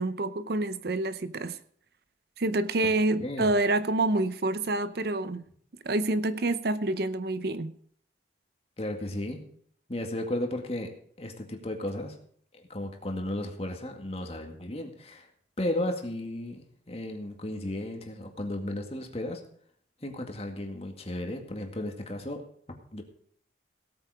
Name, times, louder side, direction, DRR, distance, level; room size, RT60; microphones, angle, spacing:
voice 1, 0.0-1.6 2.4-5.4 5.8-7.7, right 2 dB, 55° right, 0.7 m, -27 dB
voice 2, 3.2-3.5 8.8-9.4 9.9-10.9 11.2-12.1 12.5-15.3 15.6-19.4 20.0-22.4 22.9-23.0, left 1 dB, 35° left, 2.1 m, -34 dB
17.0 x 8.8 x 5.0 m
head